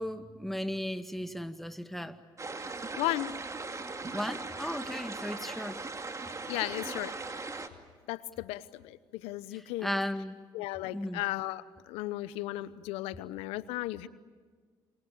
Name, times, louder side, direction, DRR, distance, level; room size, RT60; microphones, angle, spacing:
voice 1, 0.0-2.2 4.1-5.8 9.5-10.4 10.9-11.2, left 1 dB, ahead, 7 dB, 2.1 m, -36 dB
sound 1, 2.4-7.7, right 3 dB, 30° right, 2.4 m, -39 dB
voice 2, 3.0-3.3 6.5-7.4 8.1-9.9 10.5-14.1, left 16 dB, 85° left, 16 dB, 0.9 m, -35 dB
28.0 x 24.0 x 8.7 m, 1.5 s
supercardioid pair, 60°, 10 cm